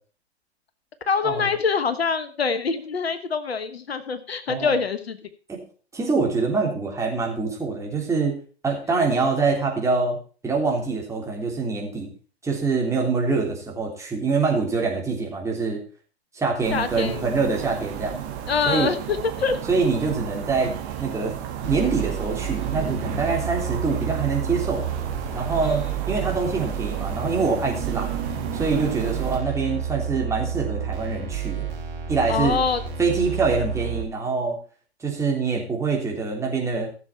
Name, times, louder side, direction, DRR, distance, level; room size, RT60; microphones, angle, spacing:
voice 1, 1.1-5.2 16.7-17.2 18.5-19.6 25.6-25.8 32.3-32.8, left 5 dB, 70° left, 11 dB, 1.3 m, -25 dB
voice 2, 5.9-10.2 10.4-12.1 12.4-15.8 16.3-18.1 18.7-18.9 19.7-20.7 21.0-21.4 21.6-24.8 25.3-28.1 28.5-31.7 32.1-32.6 33.0-34.6 35.0-36.9, right 4 dB, 10° right, -1 dB, 3.3 m, -25 dB
sound 1, 16.6-29.4, right 10 dB, 35° right, 1.9 m, -33 dB
sound 2, 21.6-34.0, right 7 dB, 55° right, 3.6 m, -30 dB
15.0 x 7.3 x 4.4 m, 0.38 s
figure-of-eight pair, 110°, 32 cm